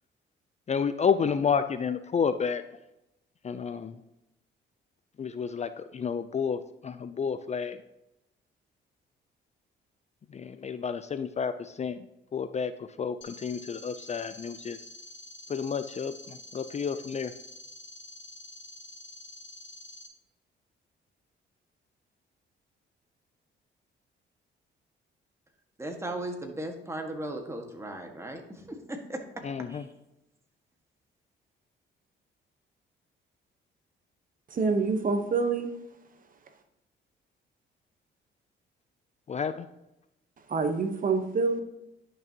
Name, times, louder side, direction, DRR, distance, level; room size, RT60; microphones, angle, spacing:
voice 1, 0.7-2.6 3.4-4.0 5.2-7.8 10.3-12.1 12.3-14.9 15.5-17.3 29.4-29.9 39.3-39.7, left 6 dB, 35° left, 11 dB, 0.5 m, -30 dB
sound 1, 13.2-20.1, left 1 dB, 65° left, 1.4 m, -47 dB
voice 2, 25.8-29.2 29.7-29.8, right 1 dB, 15° right, 3 dB, 1.7 m, -37 dB
voice 3, 34.5-35.7 40.5-41.6, right 4 dB, 45° right, 7 dB, 1.1 m, -26 dB
10.5 x 6.1 x 2.9 m, 0.88 s
cardioid pair, 90°, 20 cm